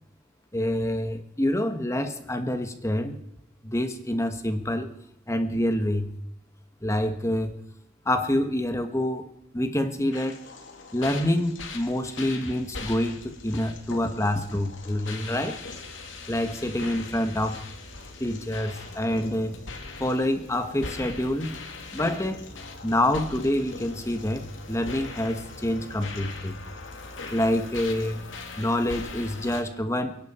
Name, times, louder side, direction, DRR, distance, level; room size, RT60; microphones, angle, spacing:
voice 1, 0.5-3.2 3.6-4.9 5.3-6.1 6.8-7.5 8.0-9.3 9.5-10.4 10.9-15.6 16.3-17.6 18.2-19.5 20.0-21.5 21.9-22.4 22.8-24.4 24.7-26.6 27.3-28.2 28.6-30.2, left 1 dB, 15° left, 8 dB, 1.4 m, -27 dB
sound 1, 10.1-29.6, left 3 dB, 90° left, 2.2 m, -40 dB
29.0 x 10.5 x 4.4 m, 0.74 s
head